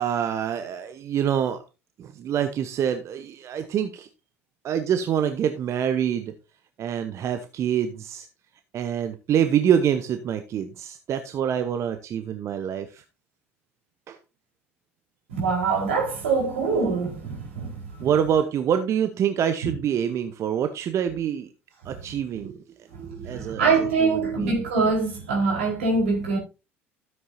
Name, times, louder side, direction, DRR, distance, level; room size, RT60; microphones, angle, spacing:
voice 1, 0.0-1.6 2.0-4.1 4.6-6.3 6.8-8.3 8.7-13.0 14.1-14.2 18.0-21.5 21.8-22.6 23.0-24.6, right 9 dB, 45° right, 0.9 m, -26 dB
voice 2, 15.3-18.1 23.3-26.4, right 4 dB, 75° right, 4.4 m, -24 dB
13.0 x 7.8 x 2.7 m
hypercardioid pair, 70°, 7 cm